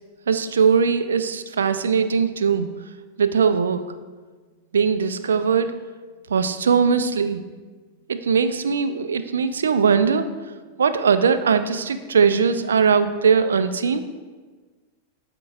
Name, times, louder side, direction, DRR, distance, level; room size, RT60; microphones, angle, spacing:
voice 1, 0.3-2.7 3.2-3.8 4.7-5.8 6.3-7.4 8.1-10.3 10.8-14.0, right 6 dB, 70° right, 10 dB, 0.4 m, -20 dB
12.0 x 4.5 x 2.5 m, 1.4 s
figure-of-eight pair, 90°, 0 cm